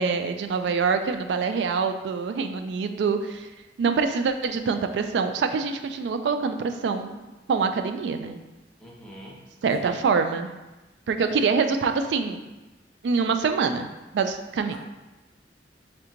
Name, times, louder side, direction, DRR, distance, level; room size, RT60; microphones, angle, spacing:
voice 1, 0.0-3.5 3.8-7.2 7.5-8.4 9.6-10.5 11.1-12.4 13.0-14.8, right 5 dB, 75° right, 7 dB, 0.3 m, -25 dB
voice 2, 8.8-9.4 9.8-10.0 11.2-11.5 14.7-14.8, equal, 5° left, -4 dB, 0.6 m, -43 dB
3.3 x 3.0 x 3.7 m, 1.1 s
head